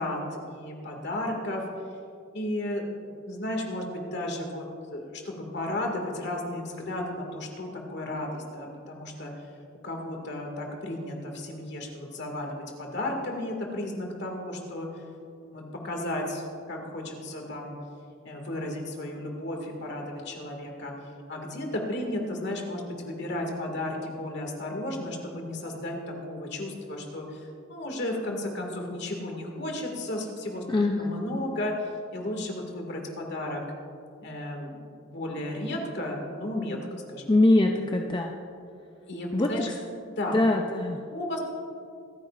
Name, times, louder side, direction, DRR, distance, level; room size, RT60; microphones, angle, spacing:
voice 1, 0.0-1.6 2.3-4.6 4.9-9.3 9.8-14.9 15.4-17.8 18.3-20.9 21.3-30.6 31.0-31.7 32.1-33.6 34.2-37.3 37.7-37.8 39.1-39.7 40.2-40.3 41.1-41.4, left 1 dB, 55° left, 1 dB, 2.0 m, -34 dB
voice 2, 30.7-31.1 37.3-38.3 39.3-39.7 40.3-41.0, left 2 dB, 20° left, 2 dB, 0.5 m, -23 dB
25.5 x 9.7 x 2.5 m, 2.4 s
head